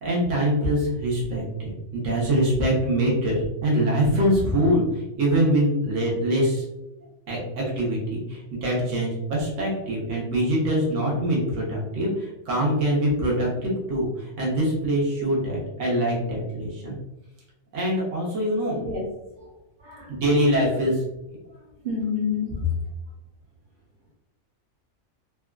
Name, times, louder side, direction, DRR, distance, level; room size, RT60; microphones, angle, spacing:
voice 1, 0.0-4.8 5.1-6.6 7.3-17.0 17.7-18.9 20.1-21.0, right 1 dB, 80° right, -4 dB, 1.2 m, -24 dB
voice 2, 21.8-22.8, left 5 dB, 50° right, -3 dB, 0.6 m, -29 dB
3.4 x 2.2 x 2.3 m, 0.90 s
omnidirectional pair, 1.3 m